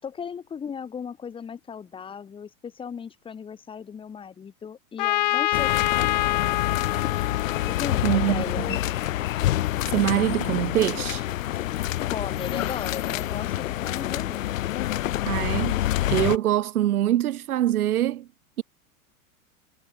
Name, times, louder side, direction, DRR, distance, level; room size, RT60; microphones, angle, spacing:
voice 1, 0.0-6.3 7.7-8.7 12.1-14.6, left 7 dB, 10° left, 6.5 m, -36 dB
Trumpet, 5.0-8.7, left 18 dB, 30° left, 0.6 m, -26 dB
sound 1, 5.5-16.4, left 14 dB, 65° left, 2.7 m, -27 dB
voice 2, 8.0-8.8 9.9-11.2 15.3-18.3, right 13 dB, 80° right, 2.4 m, -24 dB
supercardioid pair, 175°, 43 cm